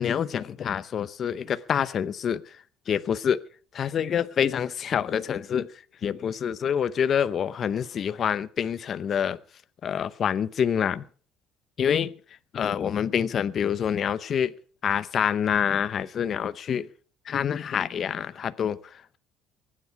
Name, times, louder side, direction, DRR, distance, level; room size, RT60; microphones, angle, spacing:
voice 1, 0.0-2.5 2.9-3.4 3.7-5.7 6.0-9.4 9.8-11.0 11.8-12.1 12.5-14.5 14.8-16.9 17.3-18.8, left 8 dB, 40° left, 0.7 m, -26 dB
23.5 x 9.8 x 4.6 m
cardioid pair, 135°, 0 cm